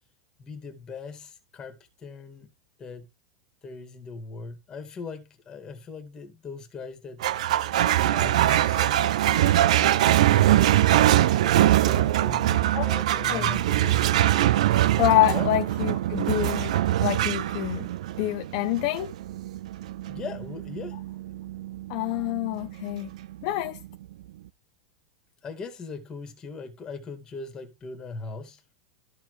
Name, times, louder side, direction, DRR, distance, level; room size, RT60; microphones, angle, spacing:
voice 1, 0.4-2.5 2.8-3.1 3.6-7.2 7.8-11.1 11.4-14.0 15.3-15.5 20.1-21.0 25.4-28.7, left 4 dB, 20° left, 2.1 m, -40 dB
sound 1, 7.2-23.9, right 13 dB, 75° right, 0.5 m, -23 dB
voice 2, 15.0-16.7 17.0-17.9 18.2-19.1 21.9-23.1 23.4-23.8, left 16 dB, 50° left, 0.6 m, -26 dB
13.5 x 4.6 x 3.2 m
supercardioid pair, 145°, 4 cm